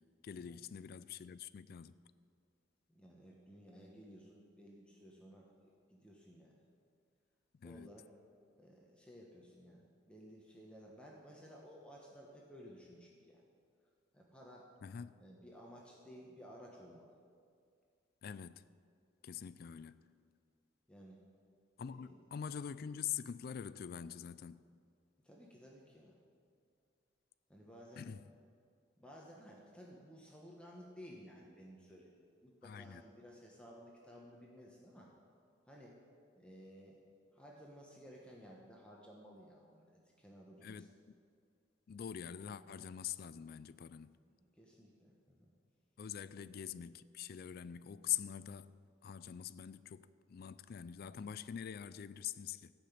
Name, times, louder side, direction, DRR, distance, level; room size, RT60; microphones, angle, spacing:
voice 1, 0.2-2.0 7.6-7.9 14.8-15.1 18.2-18.7 19.2-20.0 21.8-24.6 28.0-28.2 32.6-33.0 40.6-40.9 41.9-44.1 46.0-52.7, left 9 dB, 55° left, 0.3 m, -44 dB
voice 2, 2.9-6.6 7.6-8.1 8.6-13.4 14.1-14.7 15.2-17.1 20.9-21.2 21.8-22.1 25.2-26.2 27.5-28.1 29.0-35.1 35.7-36.0 36.3-37.0 37.3-40.9 44.3-45.4 46.4-46.5, equal, 5° left, 1.1 m, -56 dB
14.5 x 5.9 x 8.4 m
head